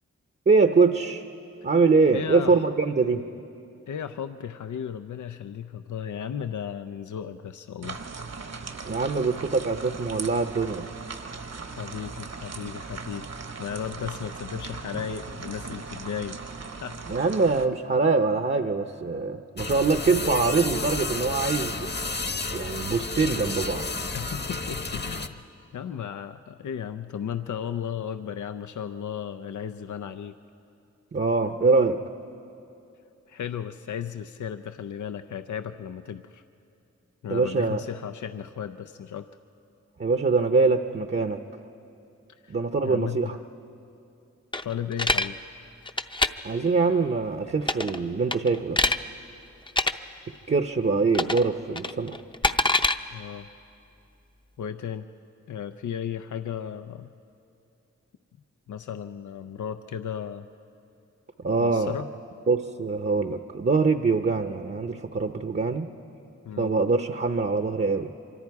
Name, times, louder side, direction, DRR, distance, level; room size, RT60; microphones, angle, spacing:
voice 1, 0.5-1.2 1.6-3.3 8.8-10.9 17.1-21.9 22.5-23.9 31.1-32.0 37.3-37.8 40.0-41.4 42.5-43.4 46.4-48.8 50.5-52.2 61.4-61.9 62.5-65.9 66.6-68.1, right 4 dB, 40° right, 7 dB, 0.7 m, -23 dB
voice 2, 2.1-2.6 3.9-8.0 11.7-13.3 13.6-16.4 16.8-17.0 24.1-25.4 25.7-30.3 33.3-36.4 37.2-39.3 42.4-42.6 42.8-43.4 44.6-45.4 53.1-53.5 54.6-55.1 55.5-57.1 58.7-60.5 61.6-62.1 66.4-66.7, left 8 dB, 90° left, 9 dB, 0.5 m, -35 dB
sound 1, 7.8-17.7, right 4 dB, 60° right, 1.1 m, -38 dB
sound 2, 19.6-25.3, left 3 dB, 35° left, 1.0 m, -31 dB
sound 3, 44.5-45.3 45.9-46.3 47.6-48.0 48.3-49.0 49.7-49.9 51.1-51.5 51.8-53.0, left 2 dB, 15° left, 0.6 m, -24 dB
25.0 x 24.5 x 4.7 m, 2.6 s
wide cardioid pair, 65°, 29 cm